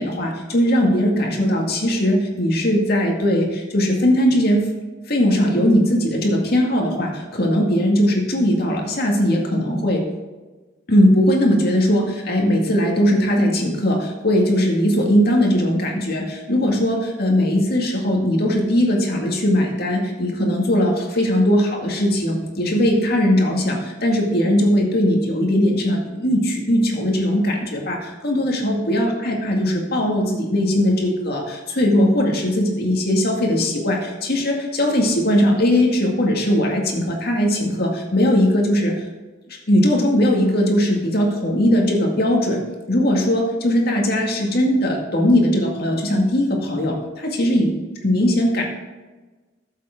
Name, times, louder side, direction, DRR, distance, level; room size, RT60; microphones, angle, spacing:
voice 1, 0.0-4.7 5.0-10.1 10.9-38.9 39.5-47.7 48.0-48.6, equal, 55° left, 0 dB, 2.1 m, -19 dB
13.5 x 7.5 x 3.7 m, 1.2 s
head